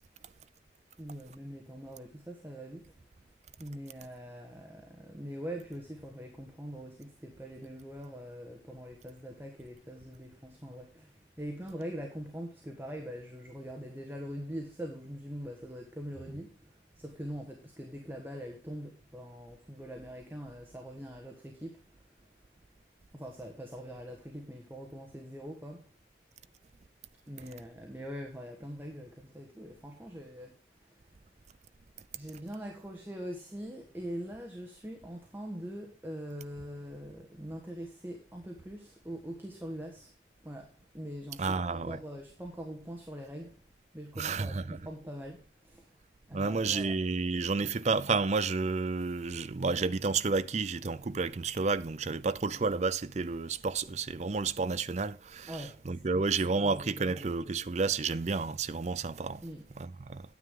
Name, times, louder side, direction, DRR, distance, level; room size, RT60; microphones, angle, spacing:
voice 1, 1.0-2.9 3.6-21.8 23.1-25.9 27.3-30.6 30.8-31.0 32.1-40.1 40.4-43.6 43.9-45.9 46.3-47.0 47.6-47.7 52.5-52.6 55.5-57.3 59.4-59.7, equal, 10° right, 1.4 m, -43 dB
voice 2, 41.4-42.0 44.2-44.8 46.3-59.4 59.8-60.2, right 4 dB, 40° right, 0.5 m, -31 dB
9.5 x 9.1 x 3.7 m
head